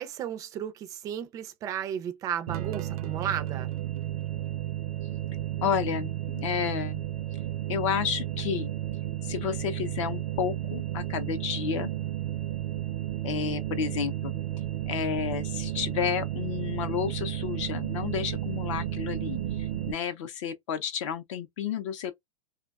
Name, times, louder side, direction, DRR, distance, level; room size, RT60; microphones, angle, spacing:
voice 1, 0.0-3.7, right 9 dB, 20° right, 0.3 m, -34 dB
sound 1, 2.5-19.9, right 12 dB, 75° right, 0.5 m, -33 dB
voice 2, 5.6-7.0 7.7-8.7 9.2-11.9 13.2-14.4 14.9-22.1, left 8 dB, 55° left, 0.5 m, -31 dB
2.6 x 2.1 x 2.3 m
supercardioid pair, 150°, 19 cm